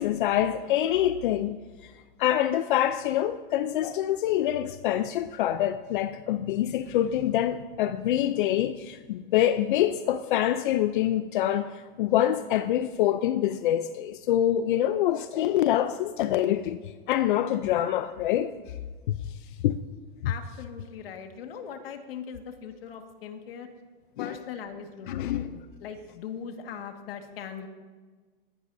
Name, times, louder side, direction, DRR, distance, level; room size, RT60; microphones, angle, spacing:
voice 1, 0.0-1.6 2.2-16.8 17.1-18.5 19.1-19.2 19.6-19.8 24.2-24.4 25.1-25.6, left 12 dB, 55° left, 0.7 m, -25 dB
voice 2, 20.2-23.7 24.2-27.7, left 7 dB, 75° left, 1.9 m, -40 dB
21.0 x 16.0 x 2.7 m
supercardioid pair, 150°, 30 cm